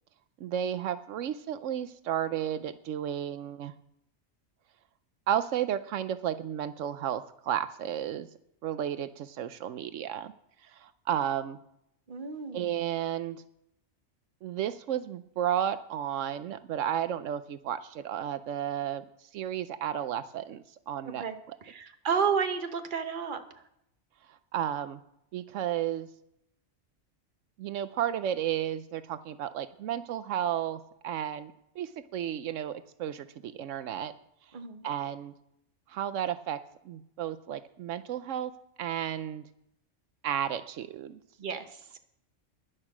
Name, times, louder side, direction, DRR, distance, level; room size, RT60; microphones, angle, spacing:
voice 1, 0.4-3.7 5.3-8.3 8.6-10.3 10.6-11.6 12.5-13.4 14.4-21.2 24.3-25.0 25.3-26.1 27.6-34.1 34.8-35.3 35.9-38.5 38.8-39.5 40.2-41.2, right 10 dB, 80° right, 13 dB, 1.0 m, -33 dB
voice 2, 12.1-12.7 21.0-21.4 21.6-23.6 34.5-34.8 41.4-42.0, right 6 dB, 45° right, 8 dB, 1.1 m, -32 dB
11.0 x 11.0 x 6.1 m, 0.77 s
omnidirectional pair, 1.3 m